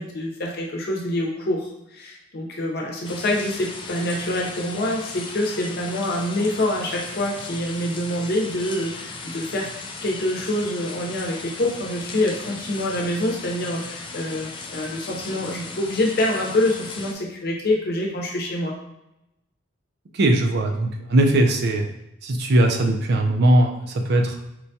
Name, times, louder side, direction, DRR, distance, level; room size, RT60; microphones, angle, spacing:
voice 1, 0.0-9.7 10.0-18.7, left 1 dB, 55° left, -1 dB, 0.7 m, -26 dB
sound 1, 3.0-17.1, left 3 dB, 25° left, 0.3 m, -37 dB
voice 2, 20.1-21.9 22.2-24.4, right 1 dB, 60° right, 3 dB, 0.4 m, -19 dB
4.4 x 2.2 x 2.7 m, 0.86 s
head